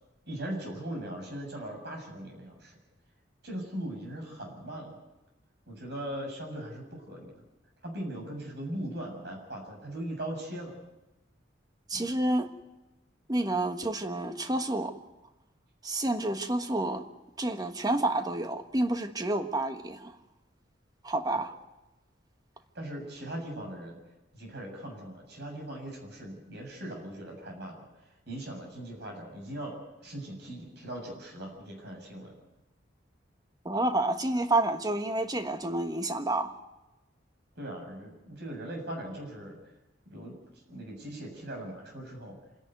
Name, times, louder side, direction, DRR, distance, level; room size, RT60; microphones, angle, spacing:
voice 1, 0.3-2.7 3.4-5.0 5.7-7.3 7.8-10.8 11.9-12.1 21.3-21.4 22.7-24.0 24.3-27.8 28.3-29.7 30.0-32.4 37.6-39.6 40.1-40.3 40.7-42.3, right 1 dB, 60° right, 1 dB, 7.5 m, -39 dB
voice 2, 11.9-12.5 13.3-14.9 15.8-17.0 17.4-20.1 21.0-21.5 33.6-36.5, right 2 dB, 20° right, 7 dB, 1.4 m, -29 dB
27.0 x 11.0 x 9.5 m, 1.0 s
head